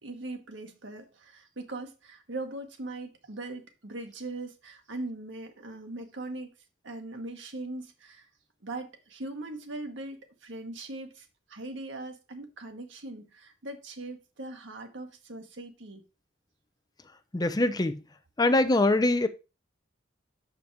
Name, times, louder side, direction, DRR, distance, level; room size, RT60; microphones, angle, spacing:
voice 1, 0.0-6.5 6.8-8.3 8.6-16.0, right 2 dB, 80° right, 1.3 m, -40 dB
voice 2, 17.3-18.0 18.4-19.3, left 2 dB, 20° left, 0.6 m, -23 dB
5.8 x 5.2 x 4.6 m
head